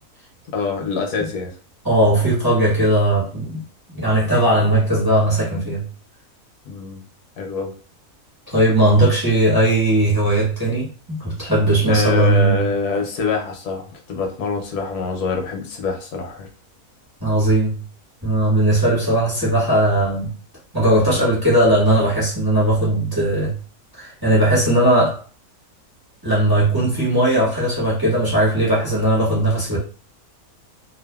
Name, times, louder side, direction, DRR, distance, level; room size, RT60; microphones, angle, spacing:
voice 1, 0.5-1.5 6.6-7.0 7.4-7.7 11.9-16.5, left 4 dB, 80° left, 1.2 m, -25 dB
voice 2, 1.8-3.6 3.9-5.8 8.5-12.6 17.2-17.8 18.2-20.3 20.7-23.5 24.0-25.2 26.2-29.8, right 1 dB, 15° right, 1.1 m, -18 dB
2.7 x 2.4 x 2.3 m
omnidirectional pair, 1.7 m